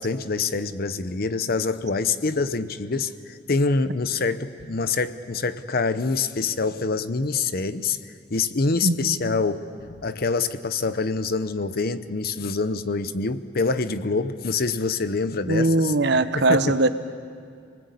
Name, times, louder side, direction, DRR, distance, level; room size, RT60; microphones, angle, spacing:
voice 1, 0.0-8.0 8.3-15.9 16.3-16.8, left 4 dB, 55° left, 11 dB, 0.8 m, -25 dB
voice 2, 8.8-9.3 15.5-16.9, right 2 dB, 65° right, 11 dB, 1.0 m, -21 dB
26.0 x 20.0 x 8.4 m, 2.2 s
head